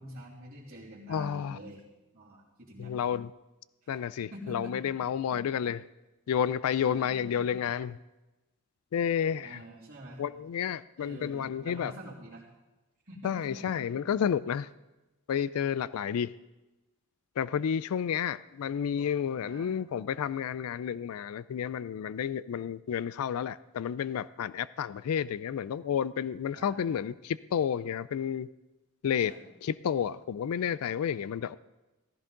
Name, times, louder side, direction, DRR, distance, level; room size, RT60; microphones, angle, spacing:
voice 1, 0.0-1.8 2.1-3.0 4.3-4.7 6.9-7.4 9.4-10.2 11.0-12.4 13.0-13.8 19.5-19.8 26.5-26.9 29.3-29.5, equal, 45° right, -8 dB, 3.1 m, -46 dB
voice 2, 1.1-1.6 2.8-3.3 3.9-5.8 6.3-8.0 8.9-9.6 10.2-11.9 13.2-14.7 15.3-16.3 17.4-28.5 29.0-29.3 29.6-31.6, left 8 dB, 80° left, 18 dB, 0.3 m, -31 dB
16.0 x 14.5 x 3.8 m, 1.1 s
head